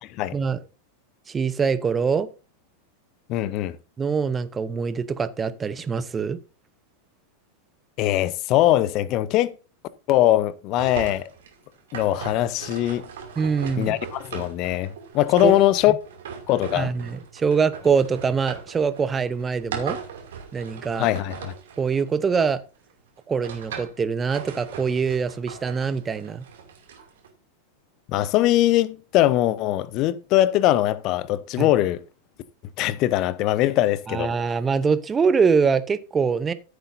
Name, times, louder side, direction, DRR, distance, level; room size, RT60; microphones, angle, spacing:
voice 1, 1.3-2.3 4.0-6.4 13.4-14.0 15.4-15.5 15.9-16.0 16.7-20.0 20.5-21.1 21.8-22.6 23.3-26.4 31.6-31.7 34.1-36.5, right 5 dB, 20° right, 0.8 m, -24 dB
voice 2, 3.3-3.8 8.0-9.5 10.1-11.2 11.9-13.0 13.8-15.9 16.5-16.9 21.0-21.5 28.1-32.0 32.8-34.3, left 14 dB, 40° left, 0.7 m, -21 dB
sound 1, 10.8-22.6 23.2-24.0 24.3-27.3, right 7 dB, 60° right, 2.6 m, -39 dB
14.0 x 8.0 x 2.7 m
figure-of-eight pair, 90°, 0 cm